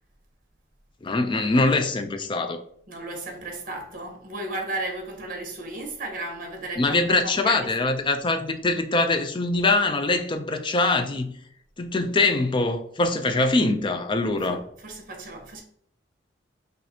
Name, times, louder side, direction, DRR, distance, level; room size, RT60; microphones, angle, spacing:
voice 1, 1.0-2.6 6.8-11.3 11.8-14.6, left 2 dB, 25° left, 0.4 m, -23 dB
voice 2, 2.9-8.0 14.4-15.6, right 2 dB, 50° right, 1.1 m, -35 dB
5.8 x 2.6 x 2.8 m
head